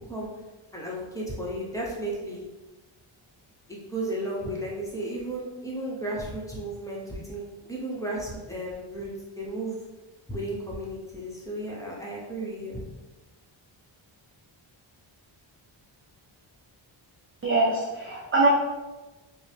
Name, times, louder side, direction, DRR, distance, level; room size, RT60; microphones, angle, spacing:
voice 1, 0.7-2.4 3.7-9.1 9.4-9.8 10.3-12.8, right 1 dB, 5° left, -5 dB, 0.8 m, -34 dB
voice 2, 17.4-18.5, right 3 dB, 30° right, -2 dB, 0.4 m, -23 dB
5.3 x 2.1 x 3.3 m, 1.1 s
wide cardioid pair, 165°, 49 cm